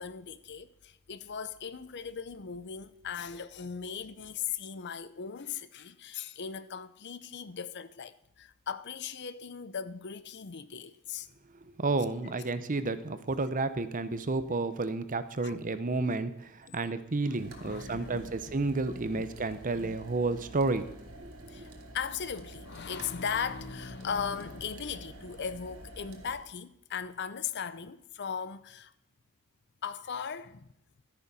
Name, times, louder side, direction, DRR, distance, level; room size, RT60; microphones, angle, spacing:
voice 1, 0.0-11.3 15.4-15.5 16.7-16.8 17.2-18.3 18.6-18.7 19.1-19.3 19.8-19.9 21.5-21.7 21.9-28.9 29.8-30.7, left 7 dB, 50° left, 0.6 m, -38 dB
voice 2, 11.8-20.9 21.2-21.6, right 3 dB, 35° right, 0.8 m, -31 dB
sound 1, 17.3-26.4, right 1 dB, 70° right, 1.9 m, -49 dB
13.0 x 9.7 x 5.5 m
head